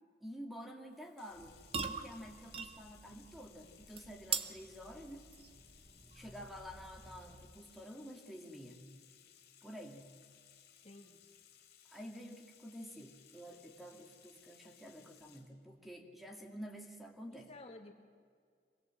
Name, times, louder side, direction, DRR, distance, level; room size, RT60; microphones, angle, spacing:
voice 1, 0.2-1.5 1.9-5.2 6.1-8.9 9.6-10.1 11.9-17.5, equal, ahead, 2 dB, 2.2 m, -50 dB
Bathtub (filling or washing), 0.9-15.5, left 9 dB, 60° left, 3.3 m, -63 dB
sound 1, 1.3-7.7, right 6 dB, 35° right, 1.1 m, -44 dB
voice 2, 10.8-11.2 17.3-17.9, left 2 dB, 35° left, 2 dB, 2.1 m, -53 dB
25.5 x 20.0 x 7.7 m, 2.1 s
head